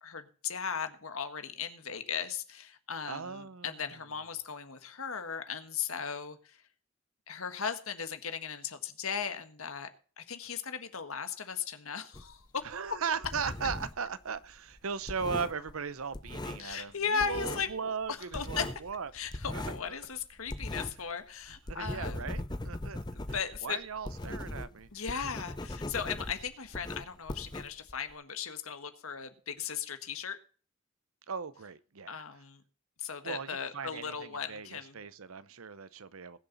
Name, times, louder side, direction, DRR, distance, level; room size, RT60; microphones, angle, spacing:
voice 1, 0.0-6.6 7.3-9.9 10.2-12.6 16.6-18.7 19.1-22.3 23.1-23.8 24.9-30.4 32.1-32.6 33.0-35.0, left 6 dB, 90° left, 1.6 m, -37 dB
voice 2, 3.0-3.7 12.6-19.1 19.5-19.6 21.7-23.0 23.6-24.9 31.3-32.2 33.2-36.4, right 6 dB, 90° right, 0.8 m, -38 dB
sound 1, 12.1-14.1 14.4-16.9 17.2-17.8 18.0-21.1 21.4-28.1, left 1 dB, 20° left, 0.7 m, -39 dB
20.5 x 7.0 x 4.1 m
head